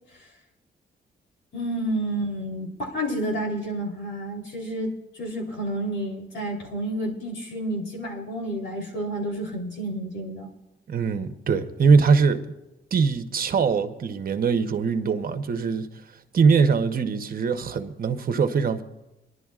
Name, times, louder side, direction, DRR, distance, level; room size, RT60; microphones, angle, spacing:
voice 1, 1.5-4.9 5.2-10.5, right 1 dB, 80° left, 3.5 m, -30 dB
voice 2, 10.9-12.4 12.9-15.9 16.3-18.8, right 5 dB, 50° right, 0.9 m, -22 dB
25.0 x 11.0 x 2.4 m
wide cardioid pair, 130°, 19 cm